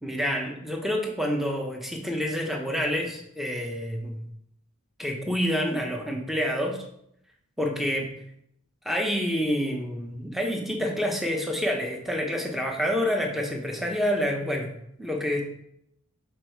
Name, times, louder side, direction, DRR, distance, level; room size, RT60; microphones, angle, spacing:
voice 1, 0.0-4.2 5.0-6.8 7.6-8.1 8.8-14.7 15.0-15.4, equal, ahead, 2 dB, 0.8 m, -28 dB
6.0 x 4.5 x 4.5 m, 0.74 s
head